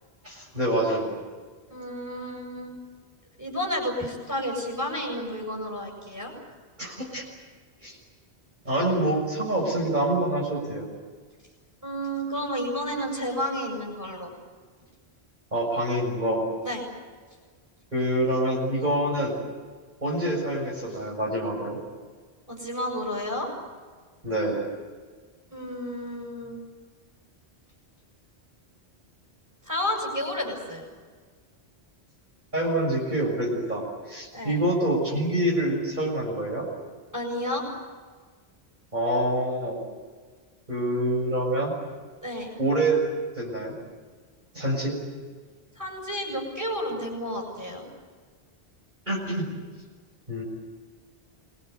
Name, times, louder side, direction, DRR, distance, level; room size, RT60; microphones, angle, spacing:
voice 1, 0.2-1.2 6.8-7.3 7.8-8.0 8.6-10.9 15.5-16.4 17.9-19.4 20.0-21.8 24.2-24.6 32.5-36.7 38.9-39.8 40.7-41.7 42.6-43.0 43.4-43.8 44.5-45.0 49.1-49.5 50.3-50.4, right 1 dB, 45° right, -2 dB, 7.1 m, -26 dB
voice 2, 1.7-2.8 3.4-6.3 11.8-14.3 16.6-16.8 22.5-23.5 25.5-26.6 29.7-30.9 34.3-34.6 37.1-37.6 42.2-42.5 45.8-47.9, equal, 15° right, 0 dB, 7.5 m, -31 dB
27.5 x 21.5 x 8.4 m, 1.5 s
omnidirectional pair, 1.1 m